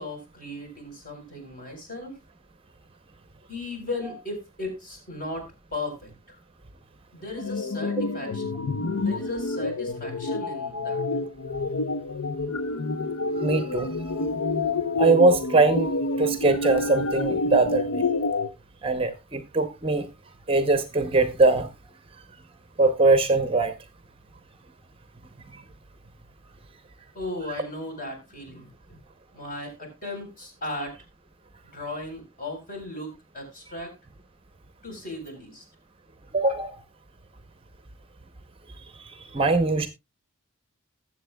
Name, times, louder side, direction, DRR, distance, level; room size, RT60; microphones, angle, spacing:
voice 1, 0.0-2.2 3.5-6.4 7.1-8.4 9.0-11.0 27.1-29.0 29.3-31.0 31.7-33.9 34.8-35.6, left 2 dB, 40° left, 4.2 m, -36 dB
sound 1, 7.4-18.5, left 2 dB, 85° left, 0.8 m, -28 dB
voice 2, 13.4-13.9 15.0-15.9 16.2-18.0 18.8-20.1 20.5-21.7 22.8-23.7 25.5-25.6 36.3-36.8 39.0-39.9, right 3 dB, 25° right, 0.7 m, -21 dB
20.5 x 7.4 x 2.2 m
head